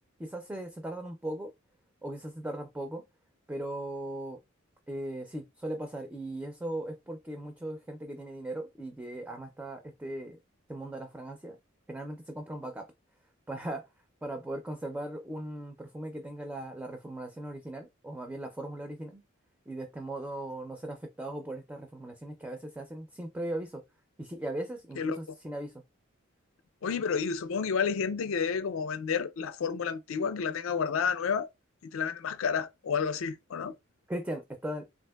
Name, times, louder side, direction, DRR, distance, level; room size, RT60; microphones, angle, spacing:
voice 1, 0.2-1.5 2.0-3.0 3.5-4.4 4.9-10.4 10.7-11.6 11.9-12.9 13.5-13.8 14.2-19.2 19.7-23.8 24.2-25.7 34.1-34.9, right 1 dB, 10° right, 0.4 m, -38 dB
voice 2, 26.8-31.5 31.8-33.7, left 6 dB, 70° left, 0.4 m, -30 dB
3.5 x 2.5 x 2.2 m
head